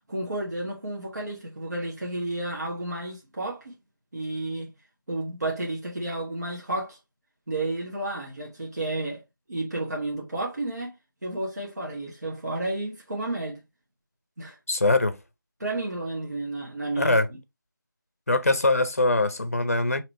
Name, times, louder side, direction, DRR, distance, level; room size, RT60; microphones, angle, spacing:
voice 1, 0.1-3.7 4.1-4.7 5.1-7.0 7.5-9.2 9.5-10.9 11.2-13.6 14.4-14.6 15.6-17.2, right 2 dB, 50° right, 1.2 m, -31 dB
voice 2, 14.7-15.2 17.0-17.3 18.3-20.0, left 2 dB, 45° left, 0.7 m, -22 dB
4.9 x 3.0 x 2.9 m
figure-of-eight pair, 170°, 11 cm